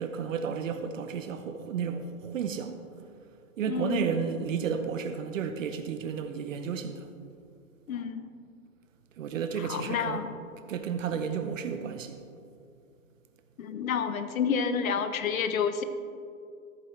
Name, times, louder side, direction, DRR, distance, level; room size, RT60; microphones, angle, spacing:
voice 1, 0.0-2.8 3.6-7.1 9.2-10.2 10.7-12.2, right 7 dB, 65° right, 0.9 m, -32 dB
voice 2, 3.7-4.1 7.9-8.2 9.6-10.4 13.6-15.8, left 6 dB, 70° left, 1.0 m, -29 dB
14.0 x 8.4 x 3.3 m
hypercardioid pair, 155°, 42 cm